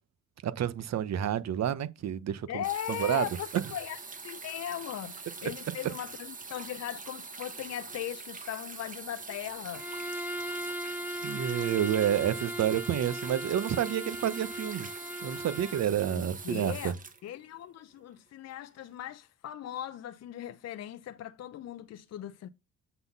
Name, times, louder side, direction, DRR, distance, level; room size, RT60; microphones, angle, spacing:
voice 1, 0.4-2.6 3.0-3.2 11.2-14.9 15.2-16.9, right 10 dB, 60° right, 1.0 m, -29 dB
voice 2, 2.5-9.9 16.1-22.5, left 11 dB, 60° left, 0.6 m, -39 dB
sound 1, 2.6-18.0 18.9-19.0, right 4 dB, 25° right, 1.3 m, -44 dB
Bowed string instrument, 9.7-15.9, equal, 5° right, 1.8 m, -38 dB
8.0 x 4.0 x 5.3 m
cardioid pair, 90°, 30 cm